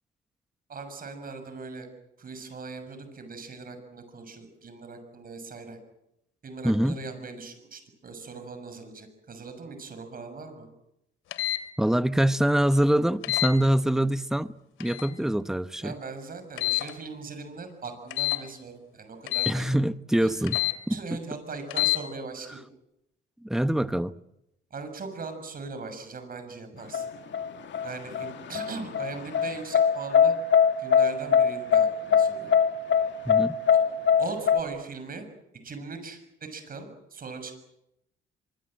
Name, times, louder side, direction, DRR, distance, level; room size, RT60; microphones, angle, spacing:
voice 1, 0.7-1.9 2.2-5.8 6.4-10.7 15.8-19.7 20.2-20.5 20.9-22.6 24.7-27.1 27.8-30.3 30.8-32.5 34.2-35.2 35.6-36.2 36.5-37.5, right 4 dB, 45° right, 6.6 m, -40 dB
voice 2, 6.6-7.0 11.8-14.5 14.8-16.0 19.4-20.6 20.9-21.2 23.4-24.1 33.3-33.6, right 1 dB, ahead, 0.9 m, -24 dB
sound 1, 11.3-11.6 13.2-13.5 14.8-15.1 16.6-16.9 18.1-18.4 19.3-19.6 20.5-20.8 21.7-22.0, left 19 dB, 85° left, 2.5 m, -27 dB
sound 2, 26.9-34.6, left 7 dB, 65° left, 2.1 m, -22 dB
25.0 x 23.5 x 7.7 m
cardioid pair, 90°, 20 cm